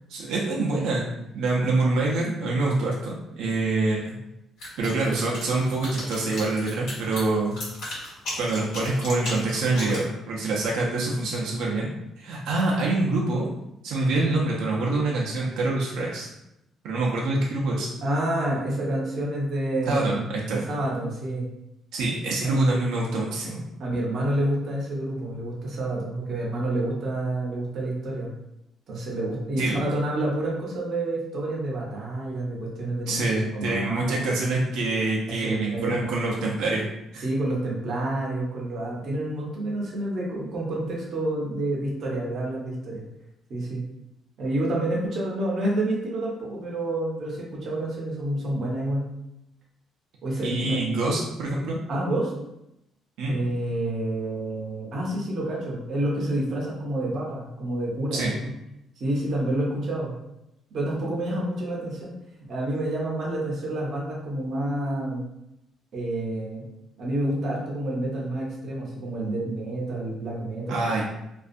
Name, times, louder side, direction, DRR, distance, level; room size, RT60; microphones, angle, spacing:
voice 1, 0.1-1.1 1.3-4.2 4.8-7.6 8.4-11.9 12.2-13.5 13.8-16.3 16.8-17.9 19.9-20.6 21.9-23.6 29.6-29.8 33.1-36.9 37.1-37.2 50.4-51.8 53.2-53.4 58.1-58.3 70.7-71.0, right 2 dB, 85° right, -3 dB, 0.5 m, -25 dB
sound 1, 4.6-10.0, left 1 dB, 85° left, 1.3 m, -35 dB
voice 2, 18.0-21.4 22.4-22.6 23.8-28.3 28.9-33.2 33.5-34.3 35.3-36.2 37.2-43.0 43.5-43.8 44.4-49.1 50.2-50.8 51.9-52.3 53.3-58.5 59.0-60.1 60.7-62.1 62.5-65.2 65.9-66.6 67.0-70.8, right 1 dB, 45° right, -4 dB, 0.6 m, -28 dB
2.5 x 2.3 x 2.5 m, 0.86 s
cardioid pair, 180°, 0 cm